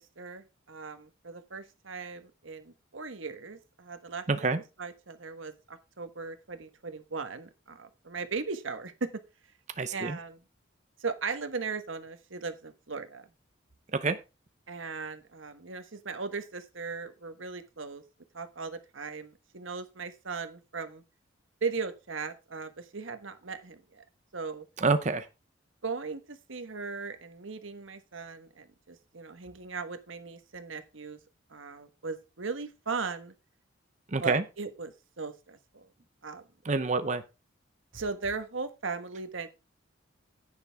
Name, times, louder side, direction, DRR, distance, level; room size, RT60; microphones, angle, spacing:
voice 1, 0.0-4.2 4.8-9.1 9.9-10.4 11.0-13.3 14.7-18.0 18.3-21.0 21.6-24.0 24.3-24.7 25.8-31.2 31.5-33.3 34.2-35.9 36.2-36.4 37.9-39.5, right 4 dB, 90° right, 9 dB, 1.4 m, -38 dB
voice 2, 4.3-4.6 9.8-10.2 13.9-14.2 24.8-25.3 34.1-34.4 36.6-37.2, right 3 dB, 35° right, 10 dB, 0.7 m, -27 dB
10.5 x 9.5 x 3.5 m, 0.28 s
head